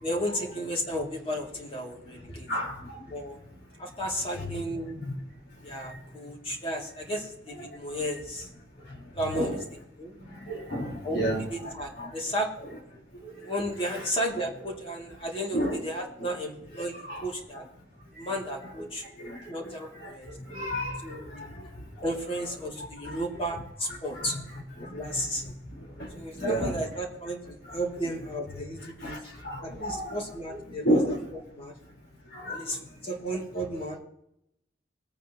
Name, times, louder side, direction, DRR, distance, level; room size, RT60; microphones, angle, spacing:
voice 1, 0.0-2.5 3.1-3.4 3.8-5.1 5.6-8.5 9.1-9.6 10.0-10.1 11.0-12.5 13.4-17.0 17.2-17.6 18.2-19.0 19.5-20.3 21.0-21.6 22.0-24.4 24.8-25.5 26.1-29.2 29.6-31.2 31.6-31.7 32.5-34.0, equal, 30° left, 0 dB, 2.8 m, -33 dB
voice 2, 10.7-11.4 15.5-15.8 17.1-17.2 20.5-20.9 26.4-26.8 29.4-29.6 29.8-30.0 30.8-31.2 32.5-32.6, right 1 dB, 65° left, -3 dB, 4.5 m, -27 dB
21.5 x 9.3 x 3.0 m, 0.80 s
head